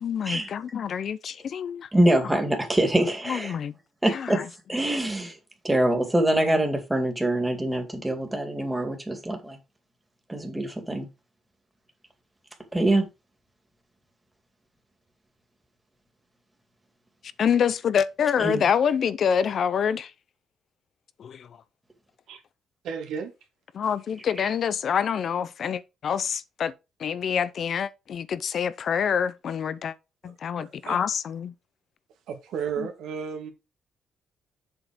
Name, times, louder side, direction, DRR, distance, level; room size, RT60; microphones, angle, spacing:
voice 1, 0.0-1.9 3.3-3.7 4.1-4.5 17.4-20.1 21.2-21.6 23.7-26.7 27.0-29.9 30.2-31.5 32.8-32.9, left 7 dB, 60° left, 0.6 m, -26 dB
voice 2, 1.9-3.5 4.0-4.4 4.7-5.3 5.6-9.6 10.3-11.1 12.7-13.1 18.4-18.6, right 1 dB, 10° right, 2.3 m, -24 dB
voice 3, 22.8-23.3 30.6-31.0 32.3-33.5, right 7 dB, 80° right, 2.0 m, -33 dB
7.5 x 4.9 x 5.1 m
cardioid pair, 90°, 0 cm